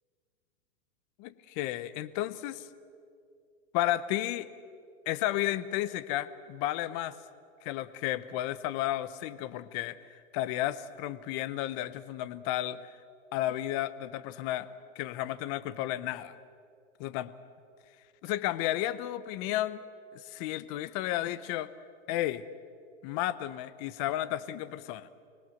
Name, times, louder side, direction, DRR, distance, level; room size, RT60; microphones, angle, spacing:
voice 1, 1.2-2.6 3.7-4.5 5.1-7.2 7.6-10.0 10.3-12.8 13.3-14.7 15.0-16.3 17.0-17.3 18.2-19.8 20.1-21.7 22.1-22.4 23.0-25.1, left 14 dB, 30° left, 16 dB, 0.7 m, -32 dB
25.0 x 19.5 x 7.8 m, 2.3 s
hypercardioid pair, 150°, 37 cm